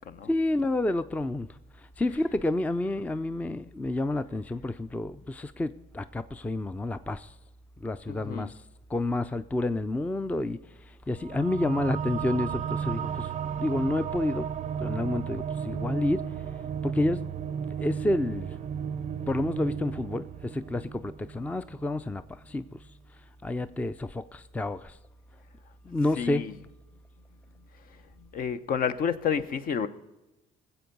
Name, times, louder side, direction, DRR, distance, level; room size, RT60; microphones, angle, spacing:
voice 1, 0.3-1.5 1.8-7.3 7.8-8.6 8.9-13.3 13.6-14.5 14.8-16.2 16.8-17.2 17.8-18.6 19.3-22.8 23.4-25.0 25.8-26.4, left 2 dB, 10° left, 0.4 m, -29 dB
voice 2, 8.1-8.5 26.2-26.5 28.2-29.9, left 7 dB, 55° left, 0.8 m, -30 dB
sound 1, 11.2-22.1, right 8 dB, 45° right, 0.5 m, -34 dB
20.0 x 7.9 x 5.3 m
cardioid pair, 110°, 17 cm